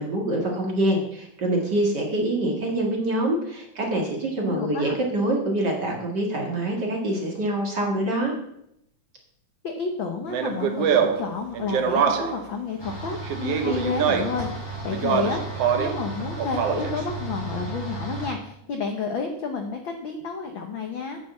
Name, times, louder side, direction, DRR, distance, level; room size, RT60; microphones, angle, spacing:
voice 1, 0.0-8.3, right 1 dB, 40° right, 0 dB, 2.1 m, -25 dB
voice 2, 4.4-5.0 9.6-21.2, left 5 dB, 70° left, 4 dB, 1.2 m, -30 dB
Speech, 10.3-12.5 13.3-14.4 14.9-16.0 16.4-17.0, right 7 dB, 65° right, 1.7 m, -24 dB
sound 1, 12.8-18.3, right 2 dB, 10° left, 1.8 m, -34 dB
8.9 x 6.8 x 7.2 m, 0.76 s
omnidirectional pair, 3.6 m